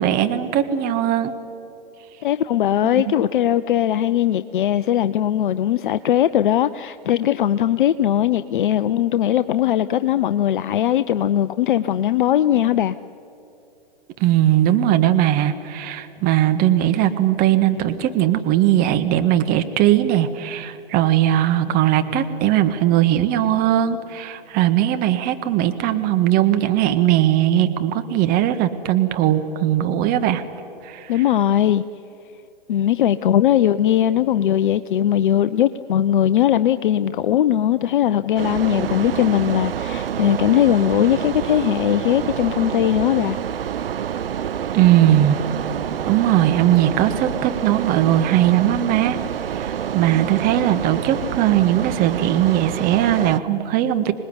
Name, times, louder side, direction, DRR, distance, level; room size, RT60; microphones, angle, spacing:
voice 1, 0.0-1.3 2.8-3.0 14.2-30.4 30.8-31.1 44.7-45.4 46.1-49.2 49.5-54.1, right 12 dB, 30° right, 1.6 m, -19 dB
voice 2, 2.2-13.0 31.1-31.8 32.7-43.4, left 11 dB, 60° left, 0.7 m, -19 dB
sound 1, 38.3-53.4, right 9 dB, 75° right, 0.7 m, -27 dB
25.5 x 19.5 x 9.7 m
hypercardioid pair, 120°, 29 cm